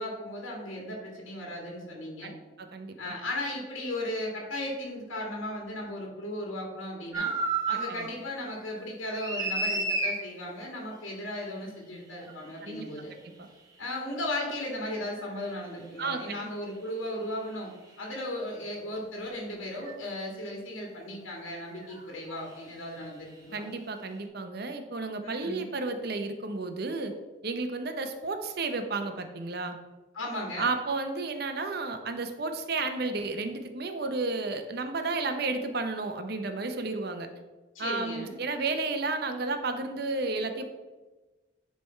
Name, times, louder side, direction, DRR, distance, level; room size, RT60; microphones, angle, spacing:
voice 1, 0.0-2.3 3.0-7.3 7.7-13.2 13.8-17.7 18.0-23.7 25.2-25.6 30.1-30.7 37.7-38.4, left 1 dB, 80° left, -1 dB, 2.0 m, -36 dB
voice 2, 2.6-3.1 7.9-8.1 12.6-12.8 13.2-13.3 16.0-16.5 23.5-27.1 27.4-29.8 30.6-37.3 37.8-40.6, right 3 dB, 50° right, 7 dB, 0.7 m, -32 dB
sound 1, 7.1-8.1 8.5-10.2 12.2-12.3 15.2-15.3 18.0-18.1 19.8-20.0 21.8-22.0 22.3-22.5, right 3 dB, 20° right, 0.8 m, -31 dB
9.6 x 3.4 x 4.4 m, 1.2 s
head